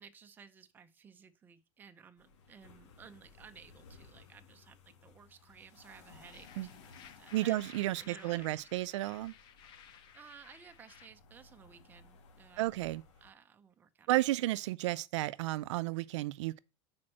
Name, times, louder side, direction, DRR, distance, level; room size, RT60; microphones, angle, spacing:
voice 1, 0.0-7.7 8.0-8.9 10.1-13.0 13.2-14.1, right 7 dB, 15° right, 0.5 m, -56 dB
sound 1, 2.2-13.3, left 4 dB, 90° left, 1.6 m, -60 dB
sound 2, 6.2-11.1, left 8 dB, 30° left, 0.7 m, -56 dB
voice 2, 7.3-9.3 12.6-13.0 14.1-16.6, right 16 dB, 85° right, 0.4 m, -32 dB
6.0 x 4.4 x 6.2 m
supercardioid pair, 165°, 15 cm